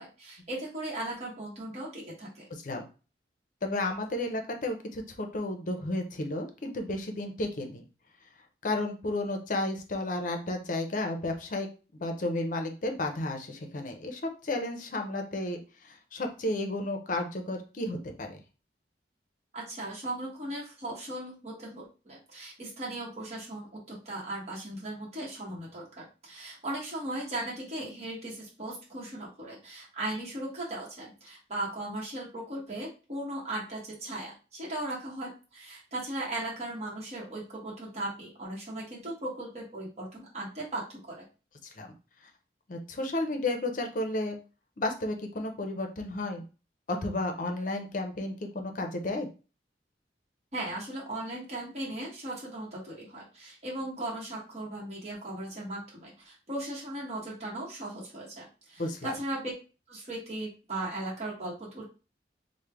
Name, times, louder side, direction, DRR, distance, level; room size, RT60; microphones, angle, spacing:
voice 1, 0.0-2.5 19.5-41.2 50.5-59.5 59.9-61.8, right 1 dB, 40° right, -5 dB, 1.0 m, -37 dB
voice 2, 3.6-7.9 8.6-11.7 11.9-18.4 41.8-41.9 42.7-44.4 44.8-46.4 46.9-49.3 58.8-59.1, left 2 dB, 50° left, 4 dB, 0.6 m, -32 dB
3.2 x 2.1 x 3.4 m, 0.34 s
head